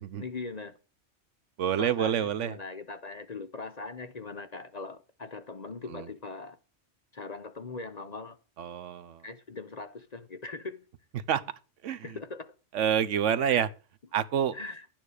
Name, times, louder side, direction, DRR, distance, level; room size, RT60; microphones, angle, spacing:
voice 1, 0.2-0.8 1.8-6.6 7.1-8.4 9.2-10.8 12.0-12.5 13.4-13.7 14.5-14.8, left 3 dB, 40° left, 0.8 m, -40 dB
voice 2, 1.6-2.6 5.9-6.1 8.6-9.2 11.3-11.4 11.8-12.2 12.7-13.7 14.1-14.6, right 9 dB, 75° right, 1.1 m, -28 dB
12.0 x 9.1 x 4.9 m
omnidirectional pair, 1.3 m